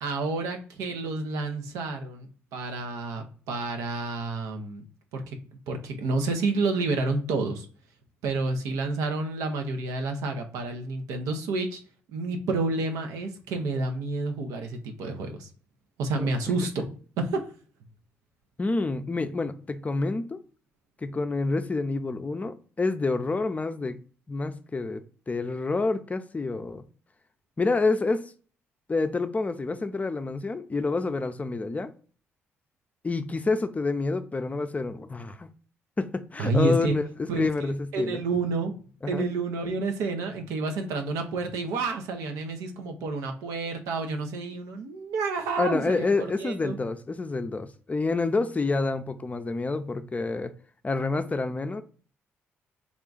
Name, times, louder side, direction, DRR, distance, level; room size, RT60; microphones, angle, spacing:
voice 1, 0.0-4.8 5.1-5.4 5.7-7.7 8.2-11.8 12.1-15.5 16.0-16.9 17.2-17.4 36.4-37.0 37.3-38.7 39.1-46.8, right 3 dB, 85° right, 0.6 m, -29 dB
voice 2, 18.6-20.4 21.0-24.0 24.3-25.0 25.3-26.8 27.6-28.3 28.9-31.9 33.0-35.5 36.0-38.2 39.0-39.2 45.6-50.5 50.8-51.8, left 3 dB, 25° left, 0.4 m, -28 dB
3.6 x 2.3 x 3.8 m
supercardioid pair, 60°, 5 cm